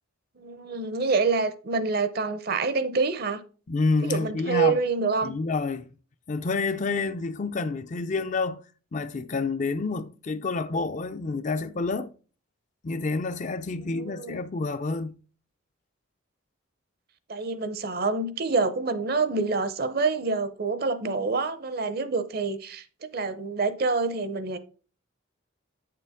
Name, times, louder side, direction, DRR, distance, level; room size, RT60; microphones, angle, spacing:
voice 1, 0.4-3.4 4.0-5.3 13.8-14.4 17.3-22.8 23.1-24.6, right 4 dB, 50° right, 0.7 m, -27 dB
voice 2, 3.7-4.8 5.2-5.9 6.3-8.6 8.9-12.1 12.8-15.1, left 3 dB, 35° left, 0.4 m, -28 dB
8.7 x 6.8 x 3.5 m
head